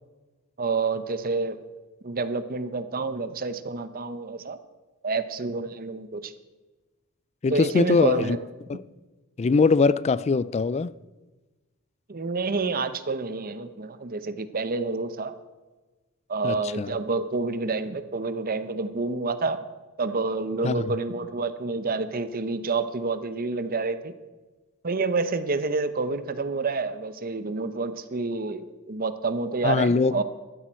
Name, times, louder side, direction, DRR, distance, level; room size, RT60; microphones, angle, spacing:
voice 1, 0.6-1.6 2.0-4.6 5.0-6.3 7.5-8.4 12.1-15.3 16.3-19.6 20.0-24.1 24.8-30.2, right 3 dB, 45° right, 0.8 m, -28 dB
voice 2, 7.4-8.4 8.7-8.8 9.4-10.9 16.4-16.9 20.6-21.0 29.6-30.2, left 4 dB, 30° left, 0.4 m, -22 dB
15.5 x 13.0 x 4.5 m
head